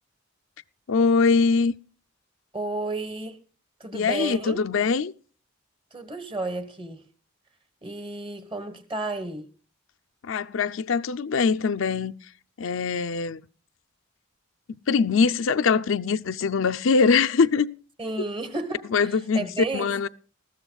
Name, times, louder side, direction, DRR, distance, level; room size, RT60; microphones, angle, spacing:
voice 1, 0.9-1.7 3.9-5.1 10.2-12.1 12.6-13.4 14.9-17.7 18.9-19.5 19.7-20.1, left 5 dB, 80° left, 0.5 m, -22 dB
voice 2, 2.5-3.4 3.8-4.6 5.9-7.1 7.8-9.5 18.0-19.9, right 2 dB, 25° right, 1.3 m, -32 dB
20.0 x 14.0 x 2.3 m
head